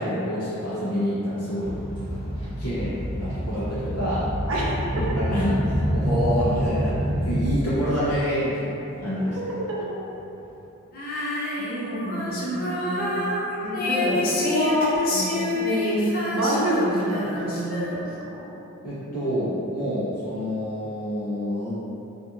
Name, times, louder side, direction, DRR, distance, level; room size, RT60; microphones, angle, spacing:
voice 1, 0.0-2.3 2.6-4.3 4.9-9.4 18.8-21.7, equal, 90° left, -11 dB, 0.7 m, -27 dB
sound 1, 1.6-7.8 8.4-8.6 9.5-9.6 10.4-10.5, equal, 55° left, 1.3 m, -27 dB
voice 2, 4.5-5.2 9.7-10.0 11.6-13.2 13.6-18.1 18.3-18.4, equal, 65° right, -5 dB, 0.6 m, -27 dB
Female singing, 10.9-18.3, left 2 dB, 40° left, 0.4 m, -28 dB
2.5 x 2.4 x 2.8 m, 2.9 s
head